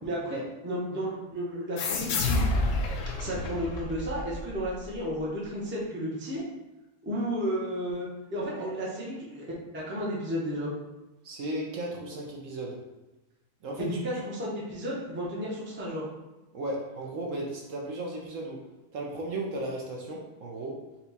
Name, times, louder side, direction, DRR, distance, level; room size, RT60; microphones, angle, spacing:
voice 1, 0.0-2.4 3.2-6.4 7.0-9.5 9.7-10.7 13.8-16.0, equal, 10° right, -5 dB, 0.6 m, -33 dB
sound 1, 1.8-5.0, left 2 dB, 65° left, 0.8 m, -29 dB
voice 2, 11.2-12.8 13.6-13.9 16.5-18.6 18.9-20.7, right 1 dB, 65° right, -2 dB, 1.0 m, -35 dB
4.3 x 2.3 x 4.0 m, 1.0 s
omnidirectional pair, 1.6 m